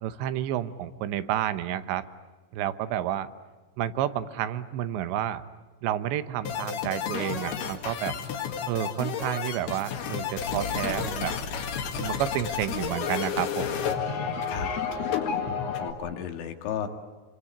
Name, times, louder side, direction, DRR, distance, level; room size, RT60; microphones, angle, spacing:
voice 1, 0.0-2.0 2.5-3.3 3.8-5.4 5.8-8.2 8.7-11.3 12.0-13.8, right 11 dB, 80° right, 12 dB, 3.2 m, -30 dB
sound 1, 6.5-15.9, left 7 dB, 65° left, 3.8 m, -31 dB
voice 2, 15.0-15.4 15.8-16.9, left 9 dB, 85° left, 5 dB, 4.3 m, -34 dB
27.5 x 24.0 x 8.7 m, 1.3 s
omnidirectional pair, 5.2 m